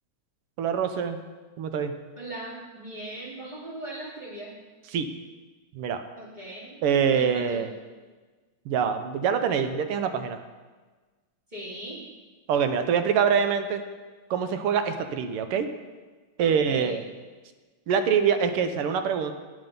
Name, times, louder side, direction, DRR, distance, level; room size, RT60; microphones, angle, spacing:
voice 1, 0.6-1.2 1.6-1.9 4.9-5.1 5.7-6.0 6.8-7.7 8.7-10.4 12.5-13.8 14.3-15.7 16.4-17.0 17.9-19.3, right 7 dB, 85° right, 8 dB, 1.7 m, -25 dB
voice 2, 2.2-4.5 6.2-6.8 7.0-7.6 11.5-12.0 16.4-17.0, right 1 dB, 20° right, -6 dB, 2.4 m, -39 dB
8.8 x 7.3 x 5.3 m, 1.3 s
omnidirectional pair, 2.4 m